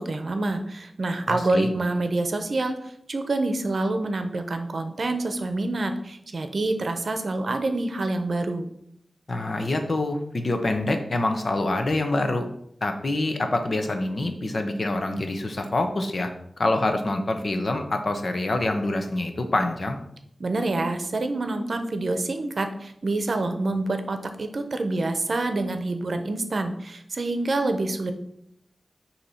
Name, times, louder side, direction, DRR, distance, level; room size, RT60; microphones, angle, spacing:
voice 1, 0.0-2.8 3.1-8.7 20.4-28.1, right 2 dB, 65° right, 7 dB, 0.7 m, -27 dB
voice 2, 1.3-1.7 9.3-12.5 12.8-16.3 16.6-20.0, left 2 dB, 55° left, 6 dB, 0.8 m, -26 dB
6.6 x 2.9 x 5.6 m, 0.72 s
wide cardioid pair, 100°, 0 cm